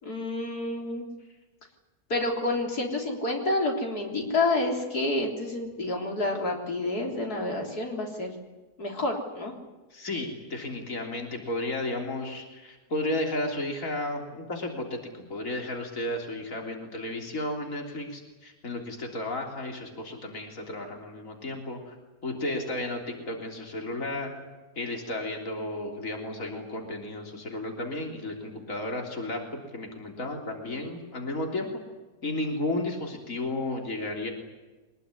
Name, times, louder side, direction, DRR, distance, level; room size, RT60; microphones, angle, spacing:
voice 1, 0.0-1.1 2.1-8.4 8.8-9.5, left 2 dB, 75° left, 1 dB, 4.2 m, -29 dB
voice 2, 9.9-22.0 22.2-24.3 24.8-31.7 32.2-34.3, left 2 dB, 55° left, 2 dB, 3.9 m, -33 dB
24.0 x 20.5 x 9.9 m, 1.2 s
omnidirectional pair, 1.6 m